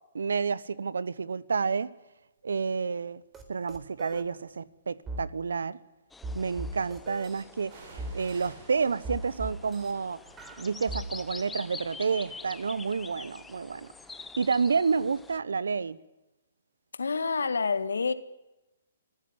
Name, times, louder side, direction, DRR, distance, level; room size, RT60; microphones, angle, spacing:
voice 1, 0.1-1.9 2.4-3.2 3.5-5.8 6.3-10.2 10.6-13.9 14.4-16.0, right 5 dB, 80° right, 1.1 m, -30 dB
sound 1, 2.8-3.1 3.8-4.7 7.6-15.3 15.6-15.7, right 3 dB, 55° right, 7.2 m, -56 dB
sound 2, 3.3-3.4 3.7-4.2 5.1-5.2 6.2-7.4 8.0-8.5 9.0-9.9 10.4-11.0, right 1 dB, 15° right, 4.0 m, -38 dB
sound 3, 6.1-15.4, left 4 dB, 10° left, 0.9 m, -46 dB
voice 2, 17.0-18.1, left 4 dB, 80° left, 1.8 m, -28 dB
26.5 x 15.0 x 9.6 m
hypercardioid pair, 135°, 0 cm